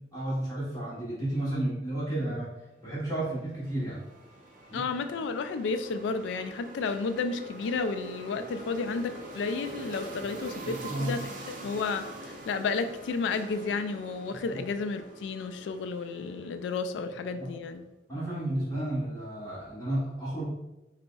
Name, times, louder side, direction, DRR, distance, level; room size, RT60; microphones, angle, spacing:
voice 1, 0.1-2.5 2.8-4.0 4.7-4.8 10.6-11.1 14.3-14.6 17.4-17.5 18.1-20.4, right 1 dB, 20° left, -9 dB, 1.0 m, -32 dB
sound 1, 3.0-17.4, right 2 dB, 50° right, 0.5 m, -45 dB
voice 2, 4.7-11.2 11.6-17.8, left 4 dB, 85° left, 9 dB, 0.3 m, -32 dB
5.2 x 2.0 x 2.3 m, 0.99 s
head